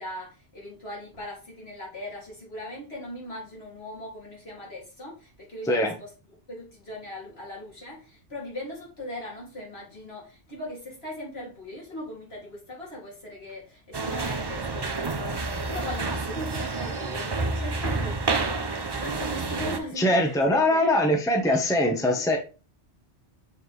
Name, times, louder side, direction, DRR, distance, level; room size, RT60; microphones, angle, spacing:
voice 1, 0.0-6.1 6.5-21.0, left 1 dB, 60° left, 3.0 m, -39 dB
sound 1, 13.9-19.8, right 3 dB, 30° right, 0.5 m, -29 dB
voice 2, 20.0-22.4, left 1 dB, 5° left, 0.9 m, -22 dB
6.7 x 4.5 x 3.2 m
omnidirectional pair, 1.2 m